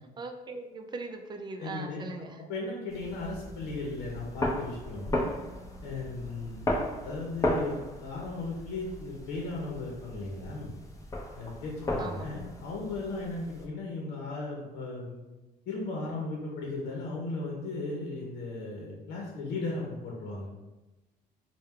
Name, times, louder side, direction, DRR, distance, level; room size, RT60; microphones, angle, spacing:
voice 1, 0.2-2.4 12.0-12.5, right 3 dB, 25° right, 4 dB, 0.5 m, -40 dB
voice 2, 1.6-2.0 2.4-5.2 5.8-6.6 7.0-10.7 11.3-15.2 15.7-20.5, left 3 dB, 90° left, -2 dB, 0.8 m, -36 dB
sound 1, 2.9-13.7, left 1 dB, 20° left, 0.7 m, -35 dB
4.3 x 2.3 x 3.6 m, 1.1 s
cardioid pair, 110°, 17 cm